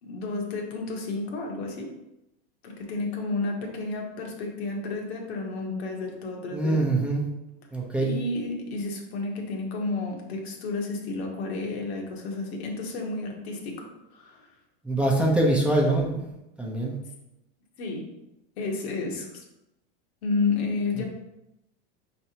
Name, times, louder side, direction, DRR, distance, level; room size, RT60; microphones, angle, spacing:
voice 1, 0.0-1.9 2.6-6.8 8.0-13.8 14.1-14.5 17.8-18.1 18.6-19.4 20.2-21.0, left 3 dB, 85° left, 0 dB, 1.2 m, -31 dB
voice 2, 6.5-7.2 7.7-8.1 14.8-16.3 16.6-16.9, right 2 dB, 5° right, -2 dB, 0.7 m, -24 dB
5.3 x 3.3 x 2.9 m, 0.90 s
supercardioid pair, 125°, 31 cm